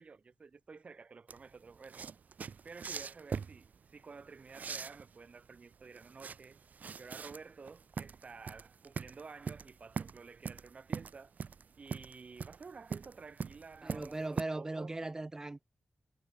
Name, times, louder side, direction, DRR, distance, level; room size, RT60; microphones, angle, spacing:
voice 1, 0.0-2.0 2.6-6.6 7.0-11.3 11.8-14.9, right 4 dB, 45° right, 3.9 m, -52 dB
sound 1, 1.3-14.4, right 6 dB, 70° right, 2.9 m, -42 dB
voice 2, 13.8-15.6, right 2 dB, 20° right, 4.1 m, -38 dB
wide cardioid pair, 160°, 3 cm